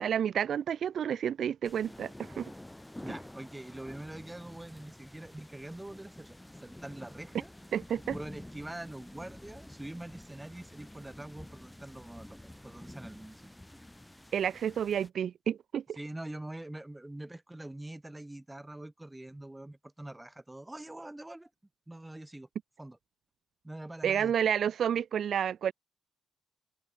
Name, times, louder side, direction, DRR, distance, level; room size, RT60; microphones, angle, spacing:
voice 1, 0.0-2.5 7.7-8.2 14.3-16.0 24.0-25.7, right 9 dB, 70° right, 0.3 m, -30 dB
sound 1, 1.6-15.1, left 1 dB, 10° left, 5.2 m, -49 dB
voice 2, 3.0-7.5 8.1-13.4 16.0-21.5 21.9-22.5 22.8-23.0 23.6-24.3, right 1 dB, 15° right, 2.5 m, -44 dB
supercardioid pair, 60°, 0 cm